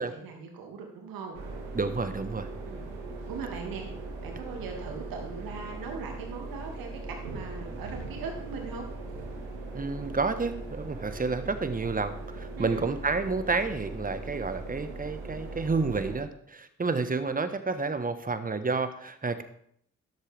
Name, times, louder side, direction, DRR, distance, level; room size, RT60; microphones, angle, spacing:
voice 1, 0.0-1.4 2.6-2.9 3.3-3.9 4.2-8.9 12.6-12.9, right 5 dB, 60° right, 2 dB, 2.3 m, -40 dB
sound 1, 1.3-16.2, right 2 dB, 80° right, 2.0 m, -39 dB
voice 2, 1.7-2.5 9.7-19.4, right 4 dB, 20° right, 10 dB, 1.3 m, -30 dB
12.5 x 11.0 x 3.5 m, 0.68 s
figure-of-eight pair, 40°, 38 cm